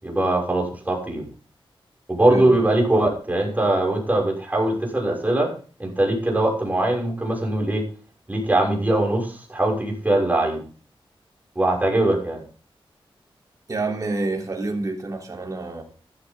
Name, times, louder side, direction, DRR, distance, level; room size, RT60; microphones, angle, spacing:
voice 1, 0.0-1.3 2.1-5.5 5.8-7.8 8.3-10.6 11.5-12.4, right 1 dB, 15° right, -1 dB, 6.3 m, -21 dB
voice 2, 13.7-15.8, right 3 dB, 40° right, 0 dB, 3.5 m, -28 dB
14.5 x 13.0 x 3.8 m, 0.40 s
wide cardioid pair, 140°, 9 cm